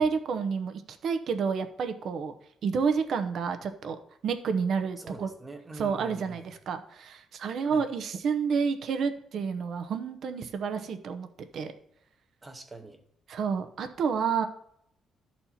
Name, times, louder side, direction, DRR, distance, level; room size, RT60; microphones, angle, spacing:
voice 1, 0.0-2.3 2.6-4.0 4.2-5.3 5.8-11.7 13.3-14.5, right 6 dB, 50° right, 8 dB, 0.8 m, -29 dB
voice 2, 5.0-6.5 7.6-7.9 12.4-13.0, right 2 dB, 15° right, 7 dB, 0.9 m, -44 dB
12.5 x 4.3 x 4.3 m, 0.72 s
cardioid pair, 170°, 0 cm